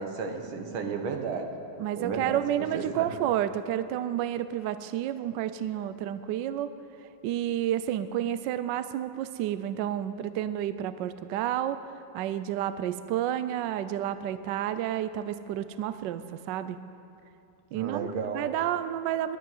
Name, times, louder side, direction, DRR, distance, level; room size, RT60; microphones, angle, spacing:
voice 1, 0.0-1.5 2.0-2.4 2.7-3.1 17.7-18.4, right 5 dB, 90° right, 4 dB, 2.0 m, -33 dB
voice 2, 1.8-6.7 7.2-11.8 12.1-16.8 17.7-18.1 18.3-19.4, right 11 dB, 75° right, 12 dB, 1.1 m, -30 dB
11.0 x 10.5 x 9.1 m, 2.6 s
omnidirectional pair, 2.2 m